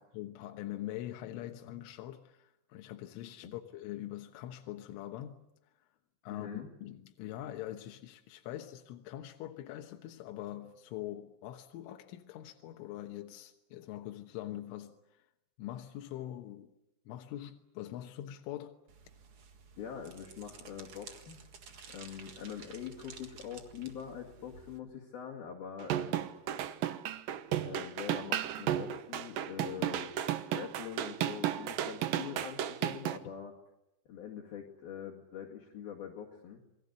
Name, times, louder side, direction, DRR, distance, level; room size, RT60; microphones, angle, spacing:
voice 1, 0.0-5.4 6.2-15.0 15.6-16.7 17.1-18.7, left 13 dB, 85° left, 3.7 m, -43 dB
voice 2, 6.3-6.7 19.8-21.4 21.9-26.2 27.6-30.1 30.5-33.5 34.1-36.6, left 8 dB, 55° left, 3.8 m, -44 dB
sound 1, 18.9-24.8, right 5 dB, 60° right, 1.4 m, -53 dB
sound 2, 25.8-33.2, right 11 dB, 75° right, 2.1 m, -34 dB
28.0 x 21.0 x 8.3 m
omnidirectional pair, 5.5 m